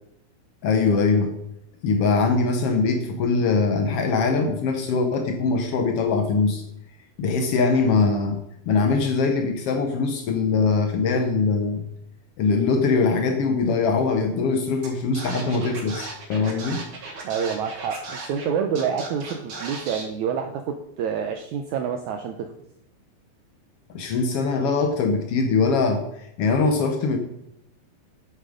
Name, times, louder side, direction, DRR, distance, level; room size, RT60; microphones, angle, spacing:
voice 1, 0.6-1.3 1.8-6.6 7.2-8.4 8.7-11.8 12.4-16.8 23.9-27.2, left 4 dB, 85° left, 5 dB, 1.3 m, -22 dB
Scratching (performance technique), 14.8-14.9 15.1-18.5 18.7-20.0, right 3 dB, 40° right, 2.3 m, -36 dB
voice 2, 17.2-22.5, right 7 dB, 75° right, 5 dB, 1.8 m, -27 dB
9.9 x 8.6 x 5.1 m, 0.77 s
omnidirectional pair, 4.1 m